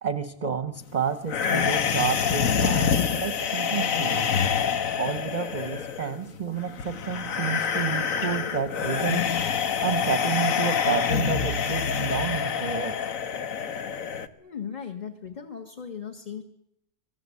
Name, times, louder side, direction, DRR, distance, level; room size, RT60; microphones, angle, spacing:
voice 1, 0.0-4.3 5.0-9.3 9.8-13.0, right 6 dB, 35° right, 11 dB, 1.0 m, -30 dB
sound 1, 1.3-14.3, left 7 dB, 65° left, 1.5 m, -26 dB
voice 2, 14.4-16.4, left 7 dB, 30° left, 3 dB, 1.7 m, -37 dB
26.0 x 18.5 x 8.4 m, 0.80 s
omnidirectional pair, 1.5 m